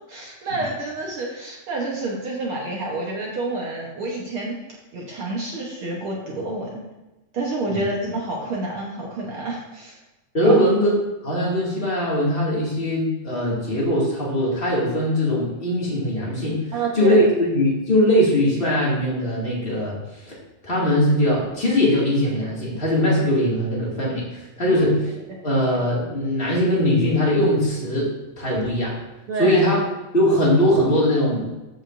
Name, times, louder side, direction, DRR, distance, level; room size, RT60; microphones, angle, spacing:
voice 1, 0.1-4.6 4.9-6.8 7.3-10.0 10.4-10.6 16.7-17.2 24.7-24.8 25.3-25.4 29.3-29.6, right 2 dB, 60° right, -2 dB, 1.6 m, -28 dB
voice 2, 10.3-16.6 16.9-20.0 20.2-20.3 20.6-25.0 25.4-28.9 29.4-29.8 30.1-31.5, equal, 20° left, -5 dB, 1.9 m, -20 dB
14.0 x 5.2 x 2.6 m, 1.0 s
omnidirectional pair, 3.4 m